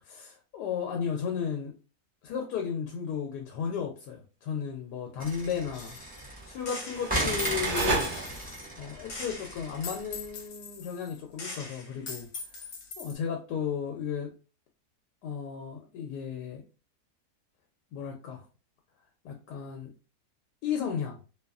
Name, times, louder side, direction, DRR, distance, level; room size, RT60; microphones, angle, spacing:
voice 1, 0.1-1.7 2.2-6.0 6.4-8.2 8.8-12.3 13.0-14.3 15.2-16.6 17.9-18.4 19.2-19.9 20.6-21.2, left 7 dB, 85° left, 1 dB, 1.2 m, -34 dB
sound 1, 5.2-6.7 7.1-10.3, right 1 dB, 10° right, 0.4 m, -35 dB
Gunshot gunfire, 5.7-6.3 6.7-8.7 9.1-13.1, left 3 dB, 60° left, 1.1 m, -41 dB
sound 2, 6.4-8.8, right 4 dB, 60° right, 0.7 m, -33 dB
2.8 x 2.3 x 2.3 m, 0.35 s
omnidirectional pair, 1.7 m